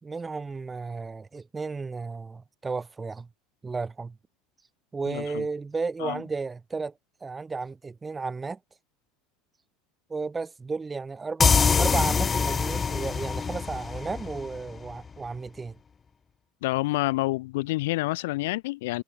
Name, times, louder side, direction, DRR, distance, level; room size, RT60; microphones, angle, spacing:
voice 1, 0.0-3.3 3.6-4.2 4.9-6.9 7.2-8.6 10.1-15.8, right 4 dB, 20° right, 5.1 m, -33 dB
voice 2, 5.1-5.4 6.0-6.2 16.6-19.0, left 20 dB, 65° left, 3.1 m, -28 dB
sound 1, 11.4-14.9, left 5 dB, 25° left, 0.7 m, -24 dB
figure-of-eight pair, 75°, 0 cm